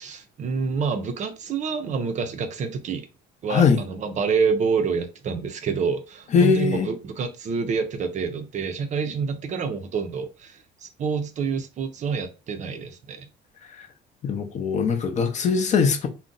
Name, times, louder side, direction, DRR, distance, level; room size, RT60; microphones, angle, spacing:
voice 1, 0.0-3.1 3.4-13.3, right 5 dB, 40° right, 0.5 m, -27 dB
voice 2, 6.3-6.9 14.2-16.1, left 6 dB, 40° left, 0.5 m, -21 dB
2.5 x 2.0 x 3.8 m
cardioid pair, 130°, 19 cm